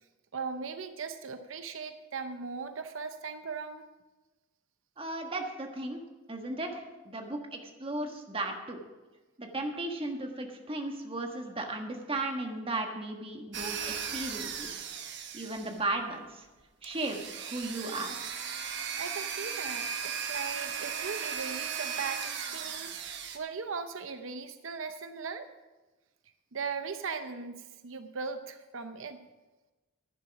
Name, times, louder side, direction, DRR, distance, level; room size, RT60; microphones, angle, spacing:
voice 1, 0.3-3.8 19.0-25.5 26.5-29.3, right 5 dB, 85° right, 9 dB, 0.7 m, -38 dB
voice 2, 5.0-6.0 6.3-8.8 9.4-14.8 15.3-16.4 16.8-18.1, right 2 dB, 30° right, 3 dB, 1.5 m, -36 dB
sound 1, 13.5-15.9 16.8-23.4, right 7 dB, 60° right, 1.1 m, -37 dB
10.5 x 10.5 x 5.9 m, 1.2 s
head